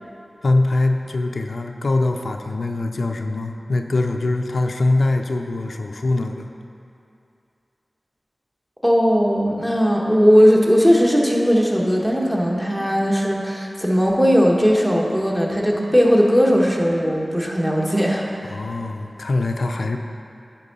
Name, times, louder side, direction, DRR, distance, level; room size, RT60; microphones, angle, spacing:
voice 1, 0.4-6.5 18.5-20.0, left 2 dB, 85° left, 4 dB, 0.4 m, -22 dB
voice 2, 8.8-18.3, equal, 10° right, -2 dB, 1.3 m, -18 dB
9.7 x 4.5 x 5.4 m, 2.6 s
wide cardioid pair, 50°, 0 cm